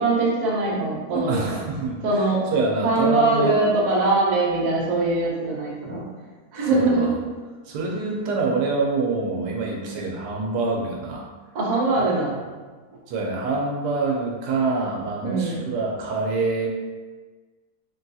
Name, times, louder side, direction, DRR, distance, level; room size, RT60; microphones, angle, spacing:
voice 1, 0.0-1.6 2.0-2.4 2.8-6.0 6.5-7.1 11.5-12.4 15.2-15.6, right 3 dB, 60° right, -4 dB, 0.4 m, -22 dB
voice 2, 1.1-2.2 2.5-3.5 6.7-7.1 7.7-11.2 13.1-16.7, right 3 dB, 90° right, -1 dB, 1.2 m, -26 dB
3.5 x 2.3 x 2.6 m, 1.4 s
omnidirectional pair, 1.7 m